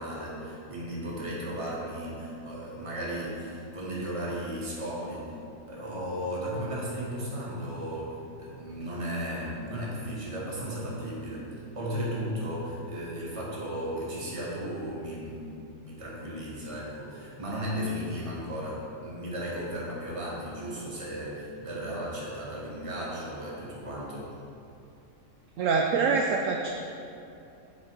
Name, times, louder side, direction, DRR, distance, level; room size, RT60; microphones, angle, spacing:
voice 1, 0.0-5.3 5.7-24.3, equal, 25° right, -5 dB, 1.3 m, -35 dB
voice 2, 25.6-26.7, right 4 dB, 70° right, 1 dB, 0.8 m, -25 dB
7.6 x 4.2 x 4.5 m, 2.6 s
omnidirectional pair, 1.5 m